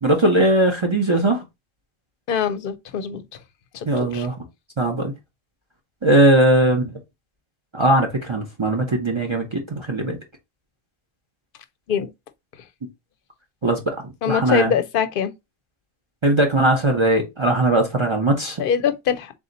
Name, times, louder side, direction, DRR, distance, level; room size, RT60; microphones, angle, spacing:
voice 1, 0.0-1.4 3.9-4.3 4.8-5.1 6.0-6.9 7.7-10.2 13.6-14.0 14.3-14.7 16.2-18.6, right 1 dB, 30° right, 0.7 m, -19 dB
voice 2, 2.3-3.2 3.7-4.3 11.9-12.1 14.2-15.3 18.6-19.3, left 7 dB, 65° left, 0.7 m, -23 dB
3.6 x 2.8 x 3.9 m
omnidirectional pair, 1.1 m